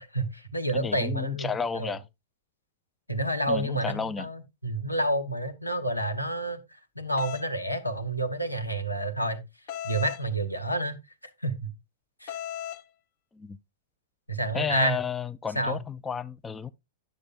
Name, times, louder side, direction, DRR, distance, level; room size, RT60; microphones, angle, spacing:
voice 1, 0.0-1.5 1.7-1.9 3.1-6.6 7.0-9.4 9.8-10.9 11.4-11.7 12.2-12.4 14.3-15.0 15.5-15.8, right 1 dB, 90° left, 1.0 m, -29 dB
voice 2, 0.7-2.1 3.5-4.3 13.3-13.6 14.5-16.7, left 6 dB, 15° left, 0.4 m, -32 dB
sound 1, 7.2-7.5 9.7-10.2 12.3-12.8, left 11 dB, 45° left, 0.8 m, -36 dB
10.5 x 6.7 x 2.4 m
figure-of-eight pair, 95°, 0 cm